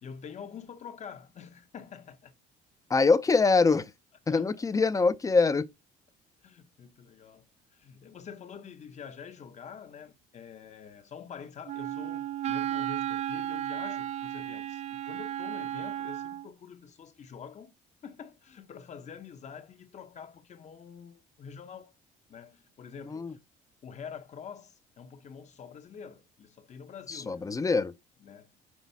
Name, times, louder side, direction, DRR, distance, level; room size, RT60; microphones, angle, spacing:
voice 1, 0.0-2.3 4.3-4.5 6.4-7.5 7.7-17.7 18.0-21.9 22.3-23.4 23.8-27.5 28.2-28.5, left 7 dB, 45° left, 1.1 m, -46 dB
voice 2, 2.9-3.9 4.3-5.7 23.1-23.3 27.1-27.9, left 4 dB, 20° left, 0.6 m, -24 dB
Wind instrument woodwind instrument, 11.7-16.5, right 11 dB, 40° right, 0.4 m, -34 dB
6.2 x 4.5 x 4.1 m
cardioid pair, 110°, 17 cm